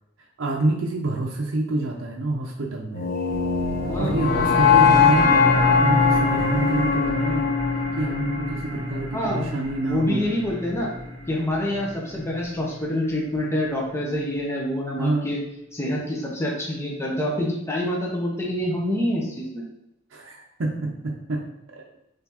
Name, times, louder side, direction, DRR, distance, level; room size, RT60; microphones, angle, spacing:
voice 1, 0.4-3.1 4.0-7.5 8.0-10.3 15.0-15.3 20.1-21.5 21.7-21.8, right 2 dB, 80° right, -2 dB, 0.6 m, -27 dB
sound 1, 2.9-9.1, left 6 dB, 45° left, 0.5 m, -21 dB
sound 2, 3.3-14.3, equal, 30° right, 1.1 m, -30 dB
voice 2, 3.9-4.2 9.1-9.5 9.8-10.9 11.3-15.4 15.7-19.6, left 1 dB, 15° left, -3 dB, 0.7 m, -26 dB
3.9 x 3.2 x 2.9 m, 0.84 s
head